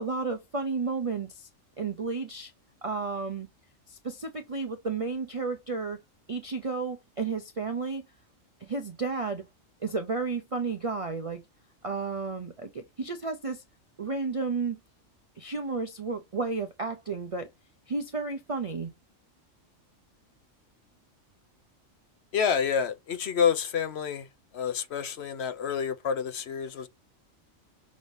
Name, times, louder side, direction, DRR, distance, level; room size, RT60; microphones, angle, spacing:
voice 1, 0.0-1.5 1.8-2.5 2.8-3.5 3.9-6.0 6.3-8.0 8.6-9.4 9.8-11.4 11.8-13.6 14.0-14.8 15.4-17.5 17.9-18.9, right 4 dB, 45° right, 0.4 m, -32 dB
voice 2, 22.3-24.3 24.5-26.9, left 7 dB, 60° left, 0.8 m, -28 dB
6.2 x 2.7 x 3.1 m
omnidirectional pair, 1.3 m